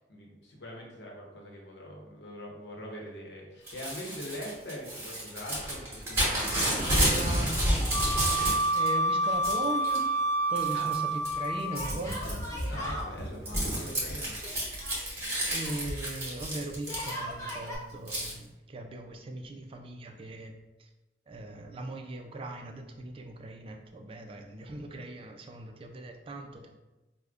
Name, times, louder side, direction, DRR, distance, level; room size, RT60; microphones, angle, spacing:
voice 1, 0.1-7.0 7.3-7.8 10.7-10.9 12.7-14.5, equal, 80° left, -1 dB, 0.8 m, -43 dB
Crumpling crinkling / Tearing, 3.7-8.9 9.2-10.0 10.5-11.0 11.2-17.5 18.1-18.3, equal, 15° right, 1.1 m, -31 dB
voice 2, 6.4-7.5 8.0-8.1 8.7-10.1 10.5-12.4 15.5-20.5 20.8-20.9 21.3-26.7, right 2 dB, 30° right, 4 dB, 0.3 m, -39 dB
Wind instrument woodwind instrument, 7.9-12.0, right 2 dB, 45° left, 0.9 m, -28 dB
Yell, 8.5-9.3 9.6-9.7 11.7-13.1 14.4-15.8 16.8-17.8, equal, 20° left, 0.6 m, -40 dB
4.9 x 2.1 x 2.4 m, 1.1 s
head